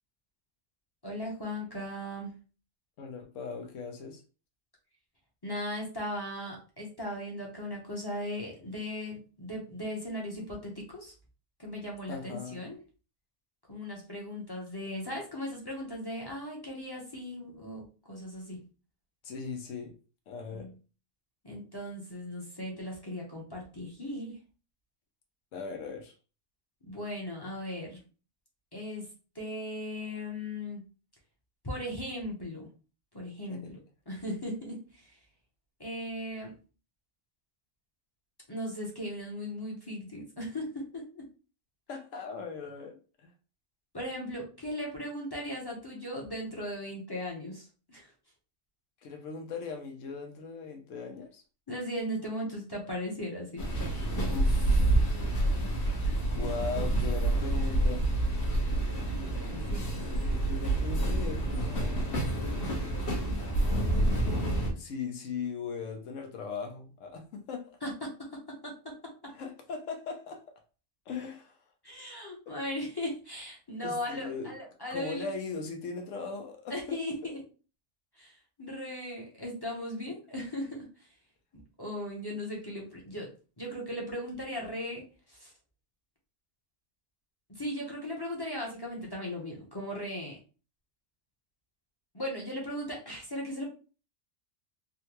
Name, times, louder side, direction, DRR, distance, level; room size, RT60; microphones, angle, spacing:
voice 1, 1.0-2.3 5.4-11.1 11.6-12.8 13.7-18.6 20.5-20.7 21.4-24.4 26.8-28.0 28.7-29.1 29.3-30.8 31.6-32.7 33.1-33.8 34.1-35.2 35.8-36.6 38.5-41.3 43.9-48.1 51.7-53.7 54.1-54.4 59.4-59.8 67.8-69.1 71.8-75.3 76.7-77.4 78.2-81.1 81.8-83.3 83.6-85.5 87.5-90.4 92.1-93.7, left 1 dB, 25° left, 0.7 m, -38 dB
voice 2, 3.0-4.2 12.1-12.6 19.2-19.9 20.3-20.7 25.5-26.1 33.5-33.7 41.9-43.3 49.0-51.4 54.3-55.0 56.2-58.1 59.5-59.7 60.0-62.1 64.8-67.8 69.3-70.4 71.1-71.6 72.5-72.7 73.8-74.5 74.9-77.0, left 5 dB, 85° left, 1.1 m, -39 dB
sound 1, 53.6-64.7, right 1 dB, 60° left, 1.2 m, -28 dB
3.6 x 2.2 x 2.9 m
omnidirectional pair, 1.3 m